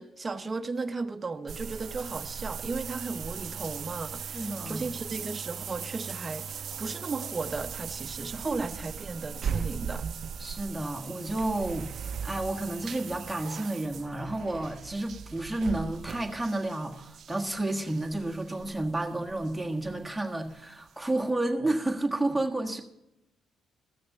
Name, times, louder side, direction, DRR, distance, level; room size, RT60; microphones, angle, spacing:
voice 1, 0.0-10.0, right 3 dB, 25° right, 0.8 m, -35 dB
sound 1, 1.5-20.2 20.5-20.6 21.1-21.2, right 7 dB, 60° right, 0.5 m, -39 dB
voice 2, 4.3-4.9 8.4-8.6 10.4-11.9 12.2-22.8, right 2 dB, 5° right, 1.5 m, -31 dB
14.5 x 6.5 x 6.7 m
cardioid pair, 90°, 0 cm